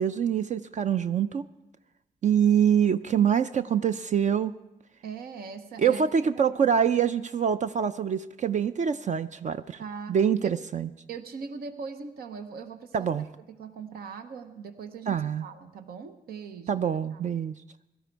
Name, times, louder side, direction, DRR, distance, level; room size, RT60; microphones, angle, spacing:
voice 1, 0.0-1.4 2.2-4.5 5.8-9.8 10.1-10.9 12.9-13.3 15.1-15.5 16.7-17.5, right 8 dB, 50° right, 11 dB, 0.4 m, -25 dB
voice 2, 5.0-6.4 9.8-10.2 10.4-10.6 11.1-13.1 13.6-16.8 17.1-17.3, right 5 dB, 90° right, 8 dB, 0.8 m, -40 dB
17.0 x 12.5 x 4.6 m, 0.96 s
cardioid pair, 70°, 15 cm